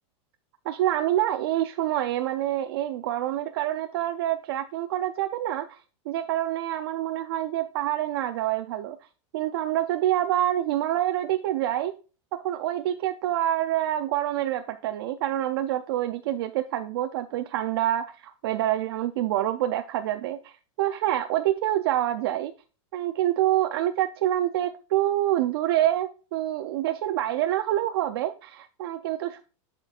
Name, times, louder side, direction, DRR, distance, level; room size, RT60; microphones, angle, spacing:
voice 1, 0.7-5.8 6.1-9.0 9.3-11.9 12.4-22.5 22.9-29.4, right 13 dB, 50° right, 8 dB, 0.4 m, -26 dB
11.5 x 4.4 x 2.4 m, 0.34 s
supercardioid pair, 170°, 16 cm